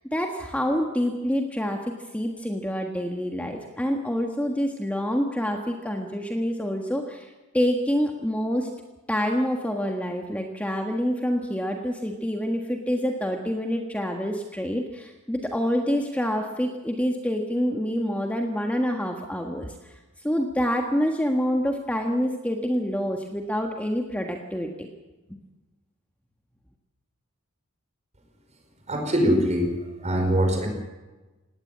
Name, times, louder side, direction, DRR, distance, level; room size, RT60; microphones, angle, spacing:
voice 1, 0.1-8.7 9.1-24.9, equal, 5° left, 2 dB, 1.5 m, -27 dB
voice 2, 28.9-29.7 30.0-30.7, equal, 30° right, 4 dB, 5.2 m, -22 dB
18.5 x 18.0 x 8.6 m, 1.2 s
head